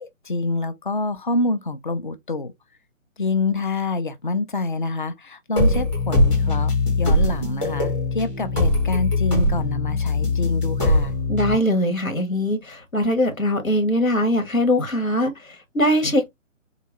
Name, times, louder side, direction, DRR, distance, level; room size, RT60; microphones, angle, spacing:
voice 1, 0.0-2.5 3.2-6.7 7.0-11.1, left 2 dB, 40° left, 0.4 m, -26 dB
sound 1, 5.6-11.5, left 2 dB, 10° left, 0.8 m, -21 dB
voice 2, 11.3-16.3, left 1 dB, 85° left, 1.3 m, -21 dB
3.7 x 2.2 x 2.9 m
figure-of-eight pair, 145°, 40 cm